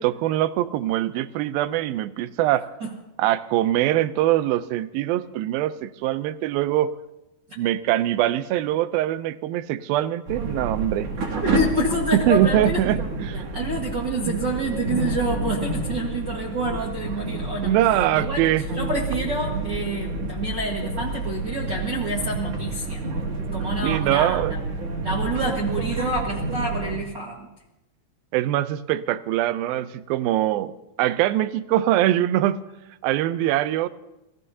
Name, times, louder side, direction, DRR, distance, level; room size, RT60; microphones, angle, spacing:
voice 1, 0.0-2.7 3.2-6.9 7.6-11.1 12.1-13.4 14.3-14.4 17.6-18.7 19.5-19.7 23.8-24.5 28.3-30.7 31.0-32.6 33.0-33.9, right 13 dB, 80° right, 13 dB, 2.2 m, -23 dB
sound 1, 10.3-27.0, right 2 dB, 45° right, 2.9 m, -29 dB
voice 2, 11.4-13.0 13.5-17.7 18.1-18.4 18.8-23.0 23.5-24.6 25.0-27.5, right 1 dB, 60° right, -3 dB, 1.1 m, -28 dB
28.0 x 17.5 x 2.8 m, 0.93 s
omnidirectional pair, 4.9 m